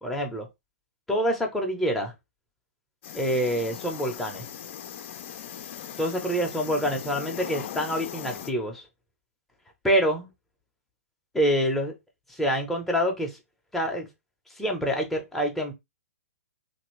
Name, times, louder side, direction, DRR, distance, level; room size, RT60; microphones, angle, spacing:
voice 1, 0.0-0.5 1.1-2.1 3.1-4.5 6.0-8.9 9.8-10.3 11.3-11.9 12.3-13.4 13.7-14.1 14.6-15.7, equal, 5° left, 0.8 m, -26 dB
sound 1, 3.0-8.5, left 10 dB, 50° left, 0.5 m, -39 dB
2.8 x 2.6 x 3.1 m
hypercardioid pair, 125°, 8 cm